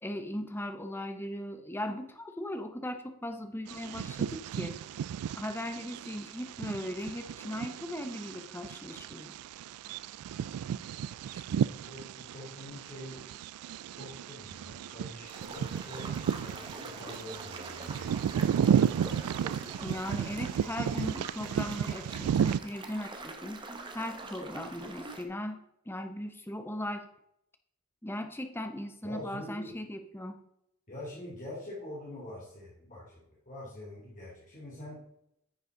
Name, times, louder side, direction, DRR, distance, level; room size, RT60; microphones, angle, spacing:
voice 1, 0.0-4.8 5.3-9.3 19.8-23.6 23.9-25.6 25.9-27.1 28.0-30.4, left 1 dB, 10° left, 7 dB, 0.8 m, -38 dB
Bird vocalization bird call bird song, 3.7-22.6, right 8 dB, 85° right, 0.3 m, -33 dB
voice 2, 10.9-13.2 14.0-16.1 16.4-18.3 29.0-29.8 30.9-35.0, left 1 dB, 35° left, -6 dB, 2.8 m, -45 dB
sound 1, 15.3-25.2, right 2 dB, 20° right, 0.9 m, -44 dB
9.7 x 6.7 x 3.8 m, 0.78 s
head